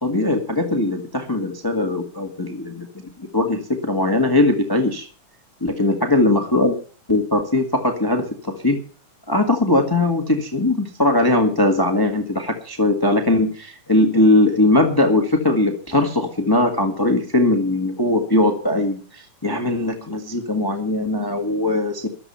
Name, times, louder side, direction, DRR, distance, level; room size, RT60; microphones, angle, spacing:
voice 1, 0.0-5.1 5.6-6.8 7.1-8.8 9.3-22.1, left 2 dB, 15° left, 4 dB, 0.7 m, -20 dB
14.0 x 12.0 x 5.7 m, 0.39 s
omnidirectional pair, 3.7 m